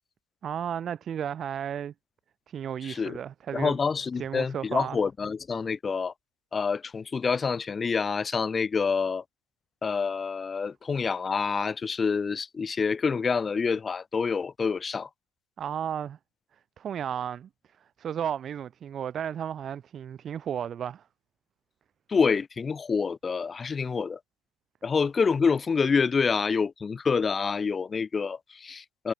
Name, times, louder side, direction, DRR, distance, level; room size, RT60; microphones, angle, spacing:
voice 1, 0.4-1.9 2.5-3.8 4.2-5.0 15.6-16.2 16.8-17.5 18.0-21.0, right 9 dB, 35° right, 1.0 m, -33 dB
voice 2, 2.8-3.2 3.5-6.1 6.5-9.2 9.8-15.1 22.1-24.2 24.8-29.1, left 5 dB, 20° left, 0.9 m, -27 dB
hypercardioid pair, 95°, 0 cm